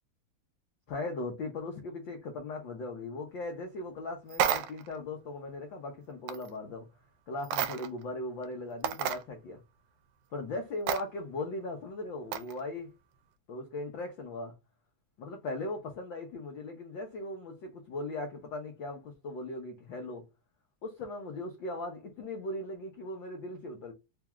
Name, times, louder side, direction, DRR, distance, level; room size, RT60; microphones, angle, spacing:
voice 1, 0.9-6.9 7.3-9.6 10.3-12.9 13.5-14.5 15.2-20.2 20.8-23.9, left 2 dB, 80° left, 1.0 m, -38 dB
sound 1, 4.3-4.9 6.3-6.5 7.4-8.0 8.4-8.5 8.8-9.2 10.9-11.0 12.3-12.6, right 9 dB, 90° right, 2.0 m, -31 dB
4.6 x 2.4 x 3.0 m
omnidirectional pair, 3.3 m